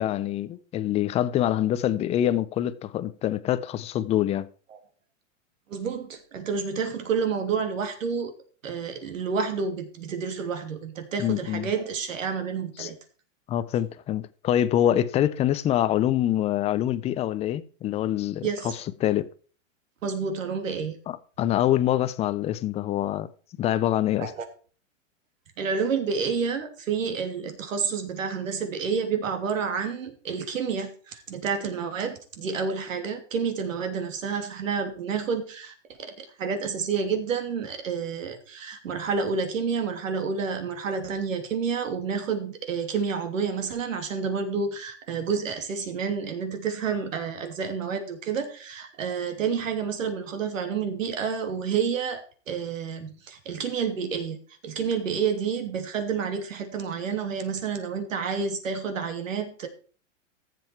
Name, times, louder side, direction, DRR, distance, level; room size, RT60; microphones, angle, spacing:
voice 1, 0.0-4.5 11.2-11.7 12.8-12.9 13.5-19.2 21.1-23.3 23.6-24.3, left 12 dB, 15° left, 0.5 m, -25 dB
voice 2, 5.7-8.3 8.6-12.9 18.4-18.8 20.0-21.0 24.2-24.3 25.6-54.4 54.6-59.7, right 6 dB, 80° right, 3.0 m, -29 dB
14.0 x 7.9 x 4.5 m
hypercardioid pair, 135°, 39 cm